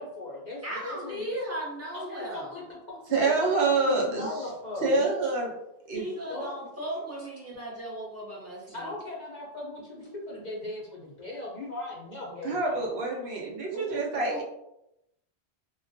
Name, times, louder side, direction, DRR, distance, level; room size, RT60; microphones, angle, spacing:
voice 1, 0.0-1.3 1.9-3.3 3.6-5.3 6.3-6.6 8.7-12.9, left 2 dB, 55° left, -4 dB, 0.5 m, -38 dB
voice 2, 0.6-2.6 5.9-8.9 13.7-14.4, equal, 15° right, -5 dB, 0.6 m, -37 dB
voice 3, 3.1-4.3 4.8-5.5 5.9-6.0 12.4-14.4, right 3 dB, 70° right, -2 dB, 0.9 m, -26 dB
2.2 x 2.2 x 2.5 m, 0.84 s
omnidirectional pair, 1.1 m